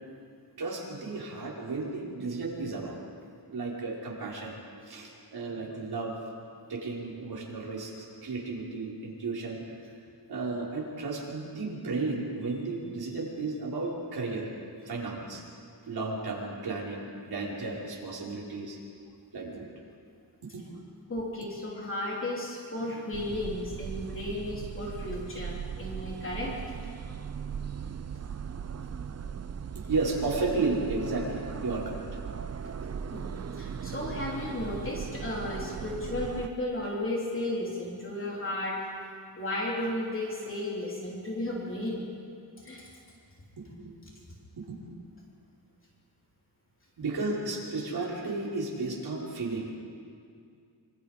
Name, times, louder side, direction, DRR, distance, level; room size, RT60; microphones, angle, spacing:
voice 1, 0.6-3.0 3.5-4.6 4.9-6.2 6.7-9.6 10.3-14.5 14.9-15.4 15.8-18.8 19.3-19.7 20.5-20.8 29.9-32.0 43.6-43.9 44.7-45.0 47.0-49.7, right 3 dB, 60° right, -4 dB, 5.2 m, -33 dB
voice 2, 21.1-26.6 33.1-38.8 39.4-42.1 42.6-42.9, left 1 dB, 30° left, -3 dB, 3.4 m, -34 dB
sound 1, 23.1-36.5, right 7 dB, 40° right, 0.7 m, -38 dB
26.5 x 25.0 x 5.3 m, 2.4 s
wide cardioid pair, 155°, 41 cm